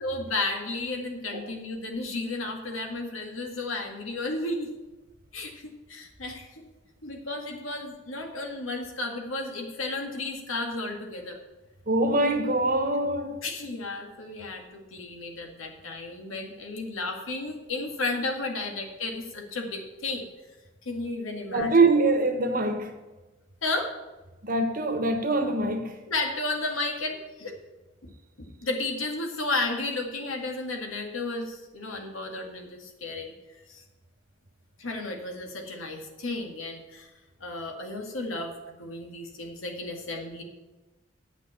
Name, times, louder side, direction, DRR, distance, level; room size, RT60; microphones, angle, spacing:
voice 1, 0.0-4.7 5.3-6.6 7.0-11.4 13.4-20.2 20.9-21.7 23.6-23.9 26.1-27.5 28.6-33.3 33.7-33.8 34.8-37.1 37.4-40.4, left 2 dB, 85° left, 2.0 m, -33 dB
voice 2, 11.9-13.4 21.5-22.9 24.4-26.0, right 2 dB, 45° right, 1.3 m, -24 dB
9.7 x 6.1 x 8.2 m
head